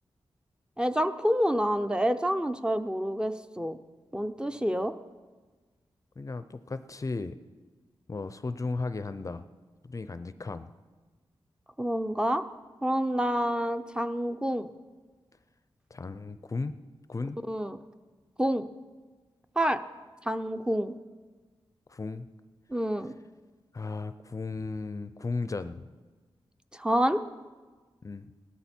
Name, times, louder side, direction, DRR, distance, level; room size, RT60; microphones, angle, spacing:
voice 1, 0.8-3.8 4.1-4.9 11.8-12.4 12.8-14.7 17.5-17.8 18.4-18.7 19.6-19.8 20.3-20.9 22.7-23.1 26.7-27.2, equal, 10° right, 9 dB, 0.6 m, -28 dB
voice 2, 6.2-7.3 8.1-9.4 9.8-10.7 15.9-16.8 17.1-17.4 21.9-22.3 23.7-25.9 28.0-28.3, left 3 dB, 35° left, 12 dB, 0.5 m, -35 dB
18.0 x 12.5 x 4.4 m, 1.3 s
wide cardioid pair, 90°, 9 cm